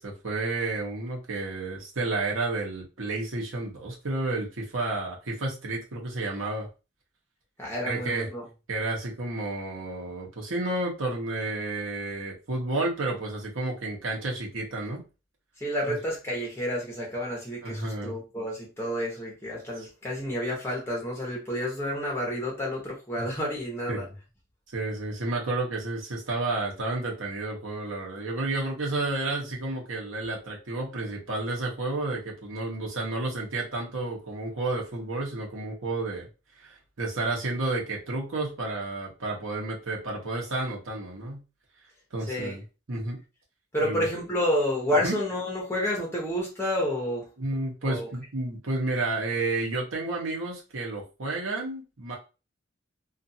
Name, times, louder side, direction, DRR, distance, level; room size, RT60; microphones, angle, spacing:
voice 1, 0.0-6.7 7.8-8.3 8.7-15.0 15.9-16.0 17.6-18.2 23.9-24.1 24.7-36.3 36.6-41.4 42.1-42.6 42.9-43.2 43.8-44.1 45.0-45.2 47.4-52.2, right 2 dB, 85° right, 0.9 m, -31 dB
voice 2, 7.6-8.5 15.6-24.1 42.3-42.6 43.7-47.3 47.8-48.1, equal, 10° left, 0.9 m, -30 dB
2.5 x 2.4 x 2.7 m
head